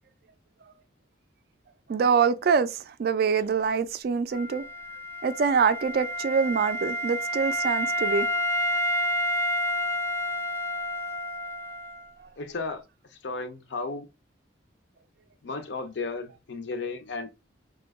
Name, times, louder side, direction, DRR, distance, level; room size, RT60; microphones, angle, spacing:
voice 1, 1.9-4.6 5.2-8.3, right 6 dB, 50° right, 0.3 m, -25 dB
Wind instrument woodwind instrument, 4.3-12.1, equal, 15° left, 0.5 m, -29 dB
voice 2, 12.4-12.8 13.1-14.1 15.4-17.3, left 3 dB, 70° left, 0.5 m, -34 dB
2.7 x 2.2 x 3.4 m
head